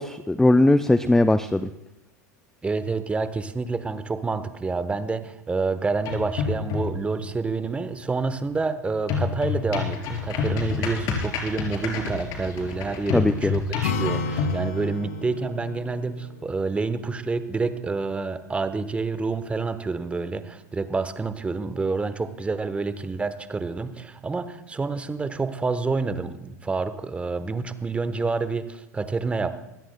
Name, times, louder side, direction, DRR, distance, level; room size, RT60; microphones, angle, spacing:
voice 1, 0.0-1.7 13.1-13.5, left 2 dB, 5° left, 12 dB, 0.4 m, -19 dB
voice 2, 2.6-29.6, right 4 dB, 15° right, 12 dB, 1.0 m, -28 dB
sound 1, 6.0-7.1 9.1-14.6, left 5 dB, 45° left, 4.0 m, -28 dB
Acoustic guitar, 13.8-17.5, left 3 dB, 65° left, 2.4 m, -33 dB
24.5 x 17.0 x 2.2 m, 0.92 s
figure-of-eight pair, 90°, 9 cm